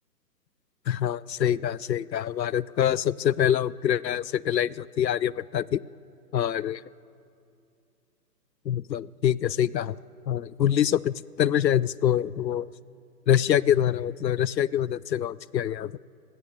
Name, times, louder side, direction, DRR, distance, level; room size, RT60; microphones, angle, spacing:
voice 1, 0.9-5.8 6.3-6.8 8.7-10.0 10.3-12.7 13.3-16.0, left 10 dB, 80° left, 21 dB, 0.7 m, -25 dB
28.5 x 16.5 x 6.7 m, 2.5 s
hypercardioid pair, 180°, 50 cm